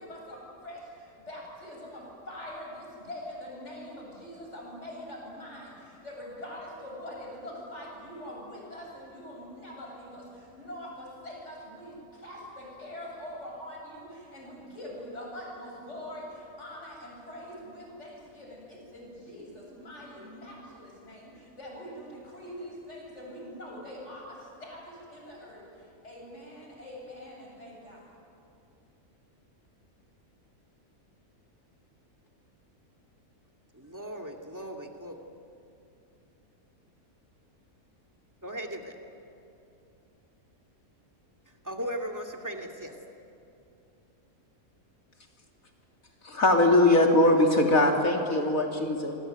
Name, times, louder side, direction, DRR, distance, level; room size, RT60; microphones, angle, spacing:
voice 1, 0.0-28.1, left 1 dB, 55° left, -2 dB, 8.3 m, -43 dB
voice 2, 33.7-35.2 38.4-38.9 41.6-42.9, equal, 10° right, 2 dB, 2.4 m, -37 dB
voice 3, 46.3-49.2, left 1 dB, 75° left, 1 dB, 3.4 m, -21 dB
27.0 x 24.0 x 9.1 m, 2.7 s
omnidirectional pair, 1.5 m